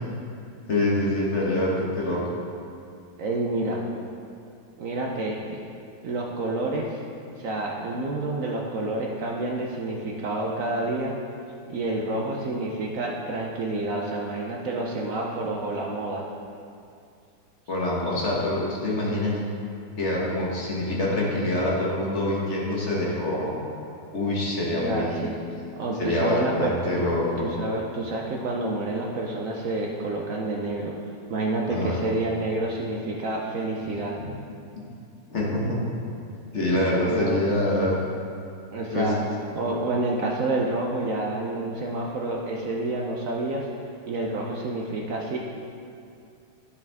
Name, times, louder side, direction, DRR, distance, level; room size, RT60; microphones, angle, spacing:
voice 1, 0.7-2.2 17.7-19.4 20.0-23.5 24.1-25.2 26.0-27.5 31.7-32.0 34.2-34.3 35.3-35.8 36.5-38.0 38.9-39.1, left 1 dB, 40° left, -5 dB, 1.3 m, -25 dB
voice 2, 3.2-3.8 4.8-5.6 6.0-7.0 7.4-11.2 11.7-16.2 24.8-25.4 25.7-26.8 27.4-31.0 31.3-34.2 37.0-37.4 38.7-39.2 39.5-43.7 44.1-45.4, right 2 dB, 85° right, -1 dB, 0.7 m, -28 dB
10.0 x 7.0 x 3.5 m, 2.5 s
omnidirectional pair, 2.3 m